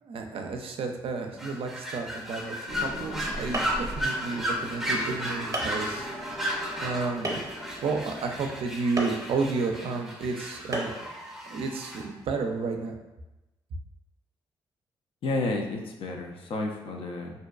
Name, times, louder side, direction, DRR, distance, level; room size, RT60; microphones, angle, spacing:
voice 1, 0.0-6.1 6.8-7.4 7.8-11.1 11.5-12.9, right 4 dB, 60° right, 4 dB, 0.4 m, -31 dB
sound 1, 1.4-12.0, equal, 5° right, 0.6 m, -34 dB
sound 2, 2.7-8.3, equal, 85° left, 0.9 m, -41 dB
sound 3, 3.5-3.9 4.7-4.8 5.5-5.8 7.2-7.6 9.0-9.2 10.7-11.0, right 1 dB, 35° right, 0.7 m, -31 dB
voice 2, 15.2-17.3, left 2 dB, 55° left, 2 dB, 0.4 m, -31 dB
2.6 x 2.2 x 2.3 m, 1.0 s
hypercardioid pair, 45°, 11 cm